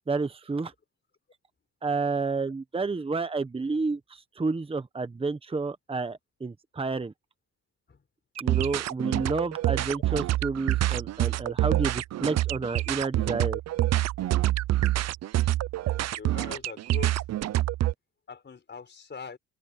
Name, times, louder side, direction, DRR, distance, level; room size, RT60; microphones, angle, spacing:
voice 1, 0.1-0.7 1.8-7.1 8.4-13.6, right 4 dB, 20° right, 1.1 m, -30 dB
sound 1, 8.4-17.9, right 15 dB, 60° right, 0.6 m, -27 dB
voice 2, 16.1-17.2 18.3-19.4, left 5 dB, 35° left, 4.8 m, -42 dB
open air
cardioid pair, 90°, 30 cm